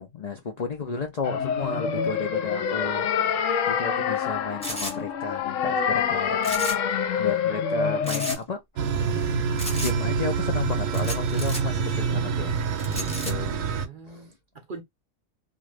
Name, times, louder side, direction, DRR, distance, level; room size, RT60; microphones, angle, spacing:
voice 1, 0.0-3.1 3.7-8.6 9.8-13.7 14.1-14.3, left 4 dB, 60° left, 0.4 m, -33 dB
sound 1, 1.2-8.4, left 7 dB, 75° left, 0.9 m, -26 dB
sound 2, 4.6-5.0 6.4-6.9 7.2-7.3 8.0-8.4 9.6-10.0 10.9-11.6 12.8-13.3, equal, 5° left, 0.8 m, -33 dB
sound 3, 8.8-13.9, right 5 dB, 75° right, 1.0 m, -26 dB
voice 2, 13.8-14.8, right 4 dB, 50° right, 0.6 m, -43 dB
2.5 x 2.4 x 3.2 m
omnidirectional pair, 1.4 m